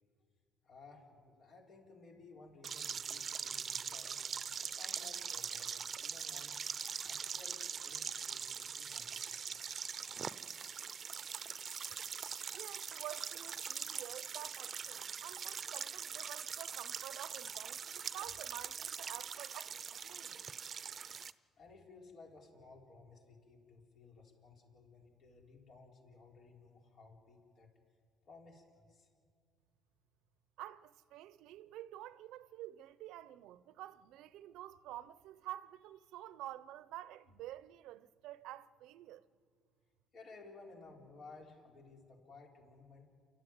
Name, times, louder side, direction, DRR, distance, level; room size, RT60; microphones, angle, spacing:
voice 1, 0.6-4.2 4.6-6.6 7.0-9.6 21.1-27.7 28.2-29.1 40.1-43.1, left 3 dB, 55° left, 4.6 m, -57 dB
sound 1, 2.6-21.3, right 7 dB, 45° right, 0.7 m, -42 dB
voice 2, 12.5-20.4 30.6-39.3, right 14 dB, 80° right, 0.7 m, -49 dB
29.0 x 13.5 x 9.3 m
supercardioid pair, 85°, 0 cm